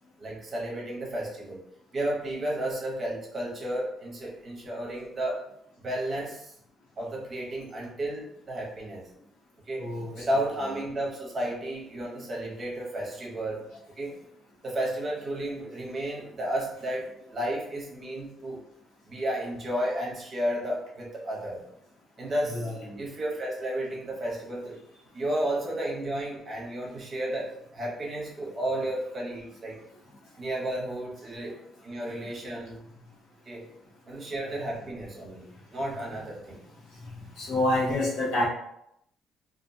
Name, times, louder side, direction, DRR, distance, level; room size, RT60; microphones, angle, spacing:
voice 1, 0.2-1.6 1.9-5.4 5.8-6.5 7.0-9.0 9.7-9.9 10.1-13.6 14.0-14.2 14.6-18.6 19.1-21.6 22.2-22.7 23.0-24.8 25.1-29.8 30.4-31.6 31.8-32.8 33.5-33.6 34.1-36.6, right 1 dB, 30° right, -3 dB, 0.7 m, -32 dB
voice 2, 9.8-10.1 22.5-23.0 37.4-38.5, left 1 dB, 85° left, -5 dB, 1.0 m, -27 dB
2.3 x 2.1 x 2.6 m, 0.77 s
cardioid pair, 145°, 0 cm